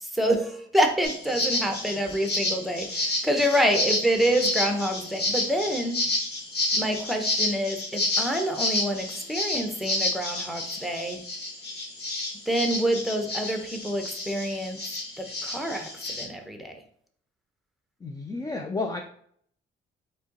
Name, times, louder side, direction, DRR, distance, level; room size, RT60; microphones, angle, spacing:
voice 1, 0.0-6.0 6.7-11.2 12.5-14.8 15.2-16.8, equal, ahead, 4 dB, 0.8 m, -27 dB
sound 1, 1.0-16.2, left 2 dB, 55° left, 1.5 m, -30 dB
voice 2, 18.0-19.0, left 3 dB, 20° left, 4 dB, 0.4 m, -31 dB
4.3 x 3.0 x 3.9 m, 0.63 s
cardioid pair, 90°, 20 cm